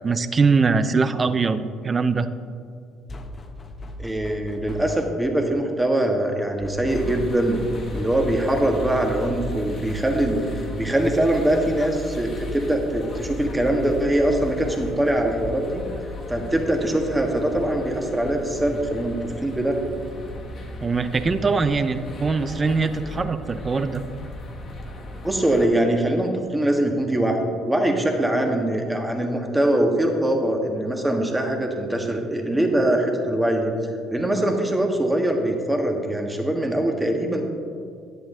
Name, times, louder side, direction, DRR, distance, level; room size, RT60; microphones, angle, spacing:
voice 1, 0.0-2.3 20.8-24.0, right 4 dB, 35° right, 12 dB, 0.5 m, -22 dB
sound 1, 3.1-5.3 6.6-9.3, left 1 dB, 35° left, 1.0 m, -39 dB
voice 2, 4.0-7.6 7.9-10.4 10.8-15.8 16.3-19.8 25.2-33.7 34.1-37.4, right 1 dB, 10° right, 2 dB, 1.5 m, -22 dB
sound 2, 6.9-25.7, left 2 dB, 50° left, 1.5 m, -36 dB
10.5 x 7.7 x 3.8 m, 2.4 s
supercardioid pair, 70°, 0 cm